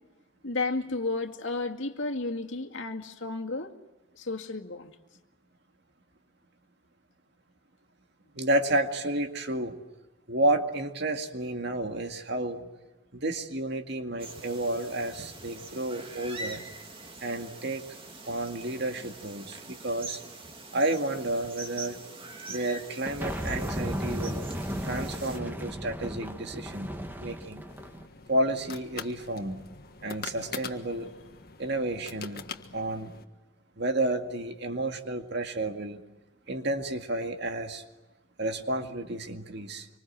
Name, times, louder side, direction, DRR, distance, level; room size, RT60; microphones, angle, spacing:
voice 1, 0.4-3.7 4.2-4.9, left 3 dB, 70° left, 2 dB, 2.2 m, -32 dB
voice 2, 8.3-9.7 10.3-12.7 13.1-16.6 17.2-17.8 18.3-20.2 20.7-22.0 22.5-24.4 24.8-26.9 27.2-27.6 28.3-29.6 30.0-31.1 31.6-32.5 32.7-33.1 33.8-36.0 36.5-37.8 38.4-39.9, right 1 dB, 55° right, 5 dB, 2.2 m, -31 dB
sound 1, 14.2-25.4, right 2 dB, 25° right, 2.4 m, -44 dB
sound 2, 23.0-28.1, equal, 10° right, 1.9 m, -35 dB
sound 3, 27.7-33.2, left 5 dB, 50° left, 1.6 m, -43 dB
26.0 x 25.5 x 7.6 m, 1.1 s
head